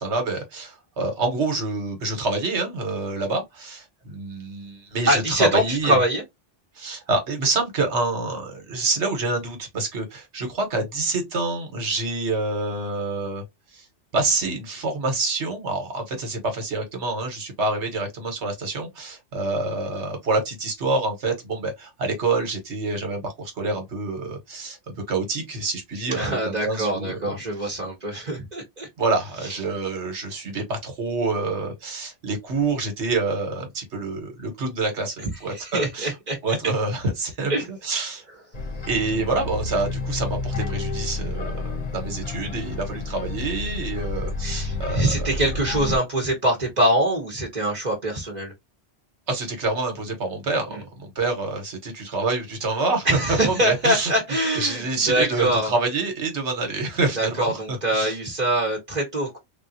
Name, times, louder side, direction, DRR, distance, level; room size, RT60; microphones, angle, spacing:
voice 1, 0.0-6.0 6.8-13.4 13.7-13.8 14.1-24.8 25.1-27.3 27.6-27.7 29.0-36.1 36.4-38.2 38.9-45.3 49.3-54.1 54.5-58.2, right 3 dB, 80° right, 1.4 m, -27 dB
voice 2, 5.1-6.2 26.1-28.9 35.5-36.7 37.5-37.7 44.4-48.5 50.7-50.8 53.0-55.7 57.2-59.4, right 1 dB, 40° right, 1.0 m, -24 dB
sound 1, 38.5-46.0, left 2 dB, 40° left, 0.8 m, -30 dB
3.5 x 2.4 x 2.7 m
omnidirectional pair, 1.1 m